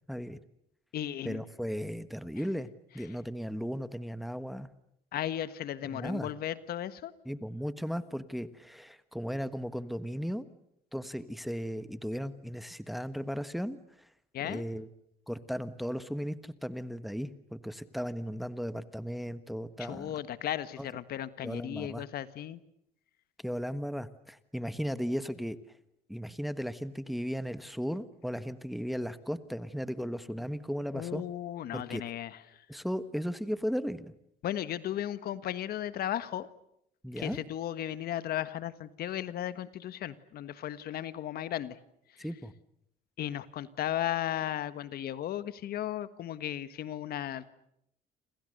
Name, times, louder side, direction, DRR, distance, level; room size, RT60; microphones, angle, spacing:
voice 1, 0.1-0.4 1.2-2.7 2.9-4.7 5.8-6.3 7.2-10.4 10.9-13.8 14.4-14.9 15.3-20.2 20.8-20.9 21.4-22.0 23.4-25.6 26.1-31.2 31.7-32.0 32.7-34.1 37.0-37.4 42.2-42.5, equal, ahead, 13 dB, 1.3 m, -36 dB
voice 2, 0.9-1.4 5.1-7.1 14.3-14.6 19.8-22.6 30.9-32.3 34.4-36.5 37.2-41.8 43.2-47.5, left 11 dB, 65° left, 14 dB, 1.5 m, -35 dB
28.5 x 28.0 x 6.7 m, 0.75 s
cardioid pair, 110°, 17 cm